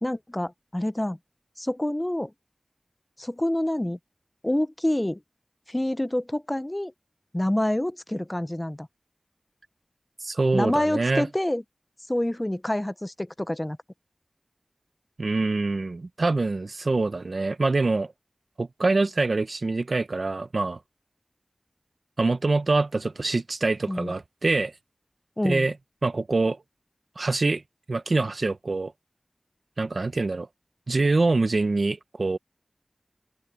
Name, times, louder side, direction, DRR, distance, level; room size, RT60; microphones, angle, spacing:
voice 1, 0.0-1.2 1.6-2.3 3.2-4.0 4.4-5.2 5.7-6.9 7.3-8.9 10.5-11.6 12.1-13.8 23.9-24.1 25.4-25.7, left 1 dB, 20° left, 0.5 m, -27 dB
voice 2, 10.2-11.3 15.2-18.1 18.6-20.8 22.2-24.7 25.4-25.7 26.0-26.6 27.2-27.6 27.9-28.9 29.8-30.5 30.9-32.4, right 3 dB, 75° right, 0.9 m, -25 dB
open air
wide cardioid pair, 55°, 0 cm